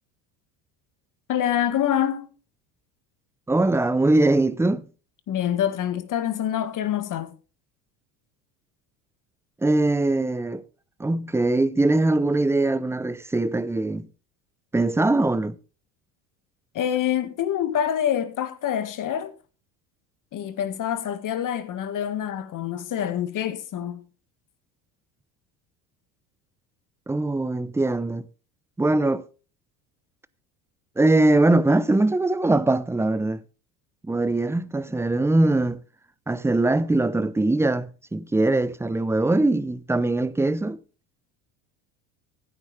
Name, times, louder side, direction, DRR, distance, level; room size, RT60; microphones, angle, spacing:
voice 1, 1.3-2.3 5.3-7.3 16.7-19.3 20.3-24.0, left 10 dB, 45° left, 1.7 m, -26 dB
voice 2, 3.5-4.8 9.6-10.6 11.0-14.1 14.7-15.6 27.1-28.2 28.8-29.2 31.0-33.4 34.1-35.8 36.3-40.8, right 2 dB, 5° right, 0.6 m, -22 dB
15.5 x 9.9 x 3.3 m
supercardioid pair, 95°, 42 cm